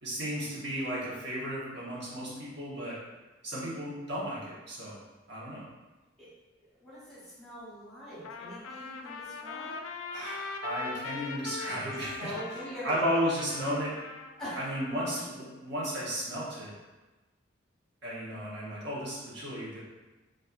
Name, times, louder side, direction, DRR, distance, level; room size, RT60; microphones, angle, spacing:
voice 1, 0.0-3.0 3.4-5.0 5.3-5.6 10.1-12.6 12.8-14.0 14.6-16.7 18.0-19.8, equal, 60° right, -7 dB, 0.9 m, -34 dB
voice 2, 6.8-9.8 11.6-13.1 14.4-14.6, equal, 5° left, -9 dB, 1.1 m, -42 dB
Trumpet, 8.2-15.3, left 4 dB, 90° left, 0.3 m, -41 dB
4.1 x 2.3 x 2.4 m, 1.2 s
head